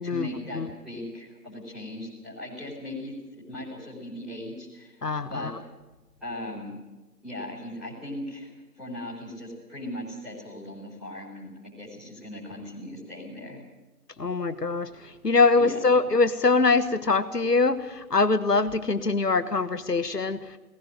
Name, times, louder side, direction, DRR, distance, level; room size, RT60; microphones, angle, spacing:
voice 1, 0.0-5.5 6.2-6.8 7.2-13.6 15.6-15.8, left 1 dB, ahead, -11 dB, 4.3 m, -38 dB
voice 2, 5.0-5.5 14.2-20.6, left 3 dB, 80° left, 10 dB, 1.5 m, -23 dB
18.5 x 17.0 x 9.1 m, 1.1 s
figure-of-eight pair, 160°, 47 cm